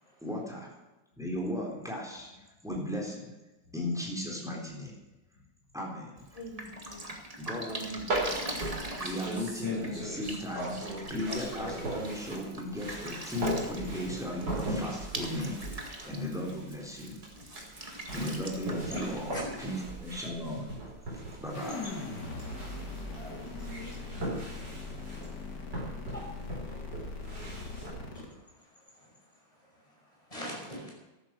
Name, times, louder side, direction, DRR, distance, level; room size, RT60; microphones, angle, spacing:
voice 1, 0.2-0.7 1.2-2.3 2.6-3.3 3.7-4.9 5.7-6.2 7.4-8.1 9.0-15.6 16.1-17.2 18.1-20.7 21.4-22.0, left 1 dB, ahead, -2 dB, 3.9 m, -36 dB
Drip, 6.2-20.2, right 1 dB, 20° right, 1.9 m, -43 dB
voice 2, 6.3-7.1 7.7-8.5 18.9-19.4 23.4-23.9, equal, 75° left, -1 dB, 5.3 m, -46 dB
sound 1, 8.1-27.9, right 1 dB, 60° right, 5.3 m, -39 dB
voice 3, 18.8-19.6 23.1-23.5 26.1-26.3 27.8-28.4 29.0-29.1 30.3-30.9, equal, 15° left, -2 dB, 5.9 m, -42 dB
sound 2, 21.5-28.3, left 3 dB, 55° left, 2.9 m, -40 dB
14.0 x 12.0 x 6.3 m, 1.1 s
omnidirectional pair, 2.1 m